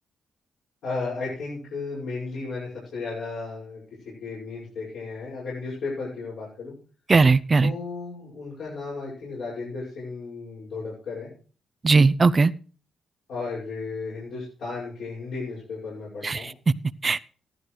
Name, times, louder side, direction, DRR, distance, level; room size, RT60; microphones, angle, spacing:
voice 1, 0.8-3.8 4.2-6.7 7.6-11.3 13.3-16.5, left 4 dB, 85° left, 6.4 m, -34 dB
voice 2, 7.1-7.7 11.8-12.5 16.2-16.4 17.0-17.2, right 4 dB, 35° right, 0.6 m, -18 dB
14.5 x 12.5 x 3.3 m
cardioid pair, 85°, 0 cm